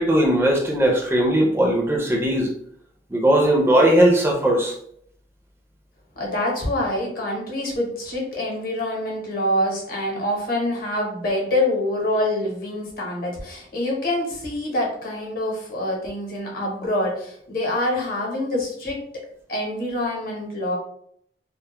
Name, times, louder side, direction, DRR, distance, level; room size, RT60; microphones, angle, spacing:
voice 1, 0.0-2.5 3.1-4.7, right 1 dB, 15° right, -1 dB, 0.4 m, -18 dB
voice 2, 6.2-19.2 19.5-20.8, left 1 dB, 55° left, 0 dB, 0.8 m, -26 dB
2.2 x 2.0 x 2.9 m, 0.67 s
head